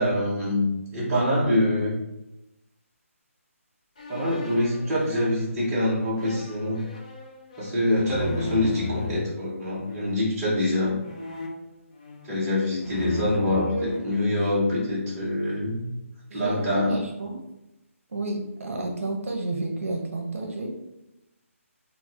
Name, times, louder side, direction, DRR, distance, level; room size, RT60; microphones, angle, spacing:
voice 1, 0.0-1.9 4.1-6.8 7.6-11.0 12.3-15.9 16.3-17.0, left 1 dB, 10° right, -11 dB, 0.6 m, -25 dB
sound 1, 4.0-9.2 9.9-10.4 11.0-12.5 12.8-14.8, left 4 dB, 30° left, 0.3 m, -38 dB
voice 2, 13.7-14.0 16.3-17.4 18.1-20.7, right 2 dB, 65° right, 1 dB, 0.6 m, -31 dB
4.0 x 2.0 x 2.3 m, 0.95 s
hypercardioid pair, 175°, 8 cm